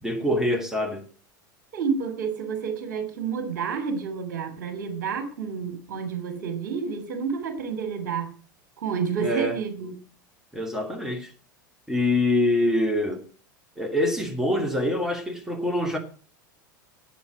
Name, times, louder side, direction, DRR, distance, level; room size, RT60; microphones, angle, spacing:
voice 1, 0.0-1.0 9.2-9.6 10.5-11.3 11.9-13.2 13.8-16.0, left 1 dB, 5° right, 2.5 m, -25 dB
voice 2, 1.7-8.3 8.8-9.9, right 6 dB, 60° right, 2.8 m, -29 dB
12.5 x 8.5 x 7.7 m
figure-of-eight pair, 80°, 11 cm